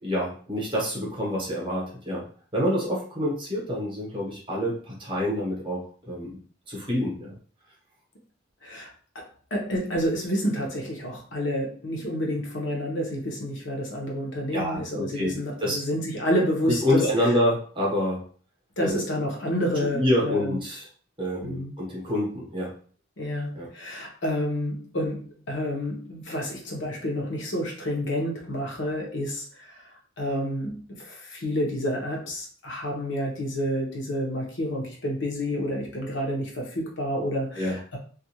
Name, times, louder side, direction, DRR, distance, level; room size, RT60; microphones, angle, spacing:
voice 1, 0.0-6.4 6.7-7.3 14.5-15.3 15.6-15.8 16.7-18.2 18.8-19.0 19.9-20.8 21.2-22.8 23.6-23.7 37.6-37.8, left 1 dB, 25° right, -3 dB, 0.9 m, -27 dB
voice 2, 9.5-17.3 18.8-20.6 21.4-21.7 23.2-29.8 30.2-38.0, equal, 65° left, -1 dB, 0.8 m, -29 dB
2.4 x 2.2 x 2.8 m, 0.43 s
head